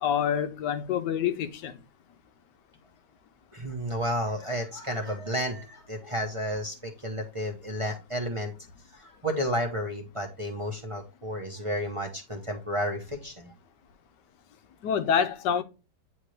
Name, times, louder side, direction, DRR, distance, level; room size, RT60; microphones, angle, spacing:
voice 1, 0.0-1.7 14.8-15.6, left 8 dB, 85° left, 1.3 m, -26 dB
voice 2, 3.5-8.5 8.9-13.5, equal, 25° right, 0.9 m, -32 dB
9.0 x 3.5 x 3.2 m
omnidirectional pair, 1.8 m